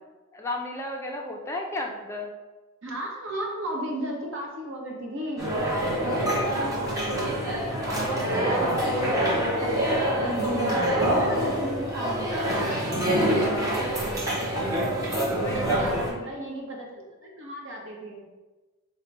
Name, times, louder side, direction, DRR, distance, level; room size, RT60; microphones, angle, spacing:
voice 1, 0.3-2.3 8.1-8.7 13.2-13.9 15.3-16.1, left 2 dB, 15° left, 0 dB, 0.3 m, -34 dB
voice 2, 2.8-7.4 7.8-9.4 9.9-12.7 13.4-14.4 15.5-18.2, right 1 dB, 65° right, -1 dB, 0.9 m, -35 dB
sound 1, 5.4-16.1, right 1 dB, 15° right, 0.8 m, -26 dB
3.9 x 2.1 x 4.5 m, 1.2 s
head